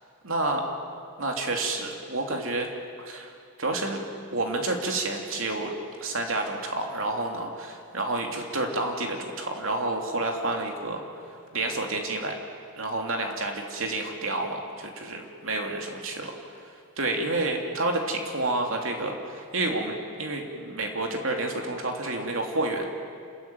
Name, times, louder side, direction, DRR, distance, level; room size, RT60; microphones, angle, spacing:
voice 1, 0.2-0.6 1.2-2.7 3.0-3.3 3.6-4.0 4.3-5.7 6.0-11.0 11.5-12.4 12.8-16.3 17.0-22.8, right 2 dB, 65° right, 2 dB, 3.0 m, -29 dB
29.0 x 14.0 x 9.2 m, 2.4 s
head